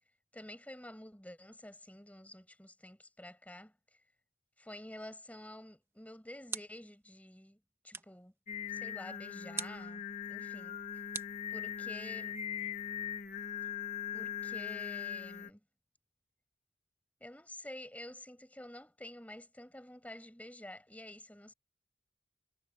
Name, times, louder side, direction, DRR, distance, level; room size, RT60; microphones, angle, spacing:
voice 1, 0.3-4.0 4.6-7.6 7.8-8.3 8.7-10.0 10.3-10.8 11.5-12.4 14.1-15.6 17.2-21.5, left 1 dB, 10° left, 6.7 m, -49 dB
sound 1, 5.8-7.0 7.9-8.3 9.5-9.9 11.1-12.0, right 4 dB, 15° right, 1.5 m, -44 dB
Singing, 8.5-15.5, left 8 dB, 40° left, 1.4 m, -40 dB
head